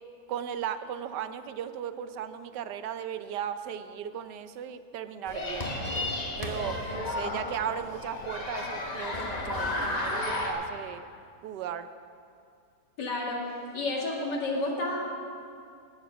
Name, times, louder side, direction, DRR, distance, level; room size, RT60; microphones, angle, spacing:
voice 1, 0.3-5.9 6.4-11.0 11.4-11.9, right 9 dB, 80° right, 11 dB, 1.2 m, -36 dB
sound 1, 5.3-10.5, left 2 dB, 25° left, 1.2 m, -33 dB
voice 2, 13.0-13.4 13.7-15.0, left 2 dB, 85° left, -1 dB, 2.6 m, -30 dB
18.0 x 7.3 x 5.9 m, 2.4 s
omnidirectional pair, 1.8 m